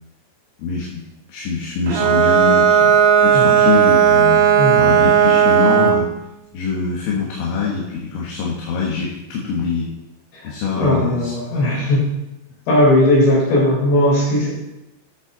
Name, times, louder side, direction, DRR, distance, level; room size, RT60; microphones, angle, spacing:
voice 1, 0.6-4.5 4.8-6.1 6.5-9.9 10.4-11.3 11.8-11.9, left 5 dB, 80° left, -4 dB, 3.8 m, -24 dB
Bowed string instrument, 1.9-6.1, right 8 dB, 85° right, 3.1 m, -14 dB
voice 2, 4.6-4.9 10.3-12.1 12.7-14.5, left 1 dB, 60° left, -4 dB, 6.0 m, -17 dB
11.5 x 7.5 x 4.0 m, 0.92 s
omnidirectional pair, 5.5 m